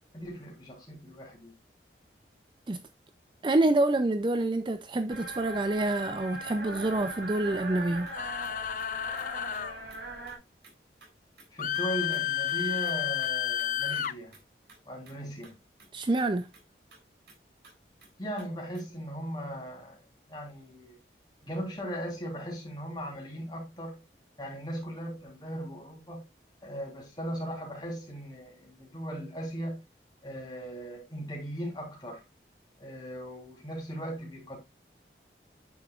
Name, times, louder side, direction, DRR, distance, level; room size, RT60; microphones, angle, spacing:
voice 1, 0.1-1.5 11.5-14.4 14.9-15.5 18.2-21.0 21.4-24.0 24.4-26.3 26.6-29.8 30.2-32.2 32.8-34.6, equal, 25° left, 3.4 m, -38 dB
voice 2, 3.4-8.1 15.9-16.5, right 2 dB, 25° right, 0.4 m, -27 dB
sound 1, 5.1-10.4, right 2 dB, 90° right, 3.0 m, -40 dB
sound 2, 8.0-10.7 11.0-11.1 11.4-11.5 11.7-11.8 12.1-12.2 12.5-12.6 12.8-13.3 13.6-14.1 14.3-14.4 14.7-14.8 15.0-15.2 15.4-15.5 15.8-15.9 16.2-16.3 16.5-16.6 16.9-17.0 17.3-17.4 17.6-17.7 18.0-18.1 18.4-18.5 18.7-18.8, right 3 dB, 75° right, 3.7 m, -56 dB
sound 3, 8.1-9.8 11.6-14.1, left 10 dB, 50° left, 0.4 m, -31 dB
9.3 x 7.0 x 2.4 m
head